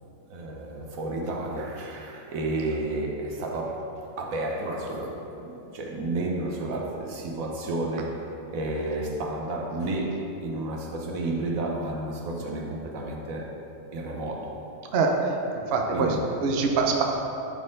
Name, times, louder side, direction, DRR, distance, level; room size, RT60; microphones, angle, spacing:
voice 1, 0.3-3.9 4.2-13.5 13.9-14.5 15.9-16.4, right 2 dB, 80° right, 0 dB, 1.3 m, -31 dB
voice 2, 14.9-15.4 15.7-17.0, right 4 dB, 55° right, 1 dB, 0.9 m, -24 dB
11.5 x 4.3 x 3.8 m, 2.9 s
omnidirectional pair, 1.4 m